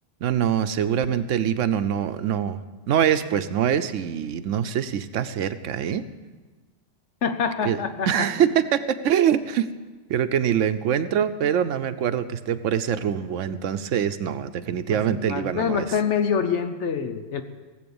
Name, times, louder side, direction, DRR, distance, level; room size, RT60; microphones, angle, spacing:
voice 1, 0.2-2.6 2.9-6.0 7.6-7.8 8.1-9.7 10.1-15.8, right 9 dB, 90° right, 11 dB, 1.0 m, -24 dB
voice 2, 7.2-8.1 14.9-17.4, left 6 dB, 70° left, 8 dB, 1.2 m, -26 dB
17.5 x 8.0 x 7.0 m, 1.3 s
omnidirectional pair, 1.2 m